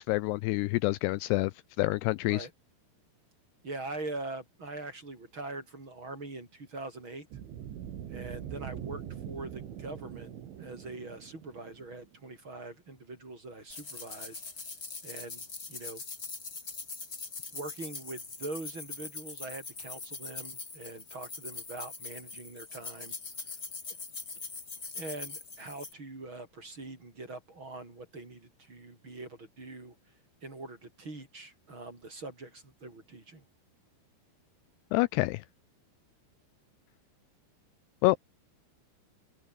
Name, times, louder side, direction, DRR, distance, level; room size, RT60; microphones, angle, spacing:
voice 1, 0.0-1.5 1.8-2.5 34.9-35.4 38.0-38.2, left 20 dB, 90° left, 2.3 m, -27 dB
voice 2, 3.6-7.3 8.1-10.3 10.6-14.4 15.0-16.0 17.5-23.2 24.9-29.9 30.4-33.4, right 2 dB, 25° right, 6.0 m, -43 dB
sound 1, 7.3-12.2, right 10 dB, 85° right, 5.2 m, -43 dB
sound 2, 13.7-25.9, left 4 dB, 20° left, 3.1 m, -42 dB
omnidirectional pair, 5.3 m